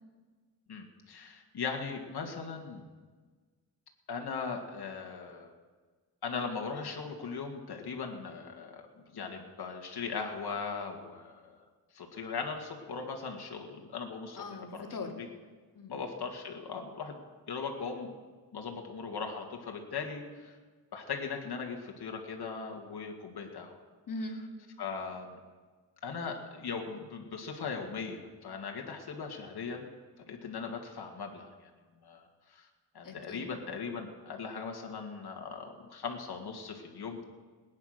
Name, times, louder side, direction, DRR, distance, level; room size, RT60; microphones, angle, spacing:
voice 1, 0.7-2.8 4.1-5.5 6.2-8.9 9.1-11.6 11.9-14.4 15.2-15.3 15.9-17.2 17.5-18.1 18.5-20.5 20.9-23.8 24.8-25.4 26.0-29.9 30.3-31.7 32.0-32.2 32.5-32.7 32.9-37.2, left 5 dB, 80° left, 2 dB, 2.0 m, -39 dB
voice 2, 14.3-15.1 15.7-16.0 24.1-24.4 33.0-33.5, left 2 dB, 55° left, 3 dB, 2.2 m, -40 dB
20.0 x 9.7 x 6.6 m, 1.4 s
wide cardioid pair, 105°, 38 cm